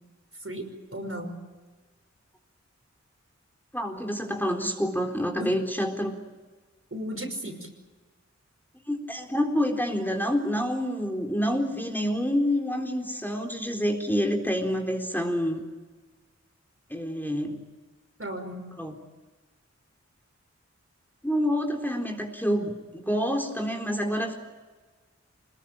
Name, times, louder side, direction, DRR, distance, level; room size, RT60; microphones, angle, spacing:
voice 1, 0.9-1.4 5.4-5.6 6.9-7.7 18.2-18.6, equal, 50° right, 5 dB, 5.7 m, -34 dB
voice 2, 3.7-6.2 8.9-15.6 16.9-17.6 18.7-19.0 21.2-24.3, equal, 5° left, 2 dB, 4.0 m, -27 dB
25.5 x 21.0 x 8.8 m, 1.3 s
wide cardioid pair, 45°, 29 cm